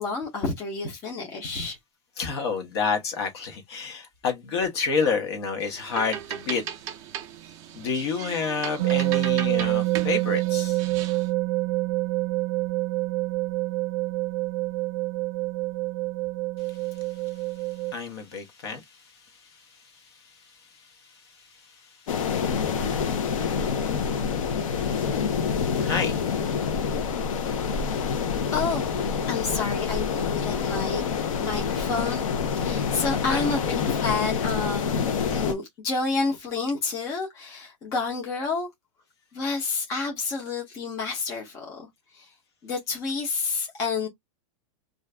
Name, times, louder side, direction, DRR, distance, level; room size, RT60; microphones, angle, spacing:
voice 1, 0.0-1.8 28.5-28.9 29.3-31.0 31.4-32.2 32.5-35.0 35.3-38.7 39.3-41.9 42.1-42.3 42.6-44.1, left 4 dB, 20° left, 0.7 m, -29 dB
voice 2, 2.2-6.6 7.7-10.8 16.7-16.8 17.9-26.5 33.3-33.7 34.7-35.0, left 5 dB, 50° left, 1.1 m, -31 dB
sound 1, 5.6-11.3, right 9 dB, 20° right, 0.4 m, -37 dB
sound 2, 8.8-17.9, right 21 dB, 75° right, 0.6 m, -26 dB
sound 3, 22.1-35.5, left 6 dB, 80° left, 0.7 m, -27 dB
2.5 x 2.4 x 3.2 m
supercardioid pair, 180°, 17 cm